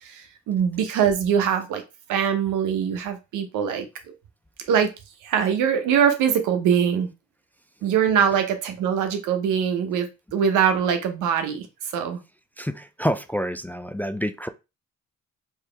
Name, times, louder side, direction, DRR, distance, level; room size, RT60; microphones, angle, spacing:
voice 1, 0.0-1.8 2.1-3.9 4.7-4.9 5.2-7.1 7.8-12.2, right 8 dB, 90° right, 0.9 m, -23 dB
voice 2, 12.6-14.5, equal, 5° left, 0.3 m, -28 dB
4.6 x 2.9 x 3.3 m
cardioid pair, 90°, 30 cm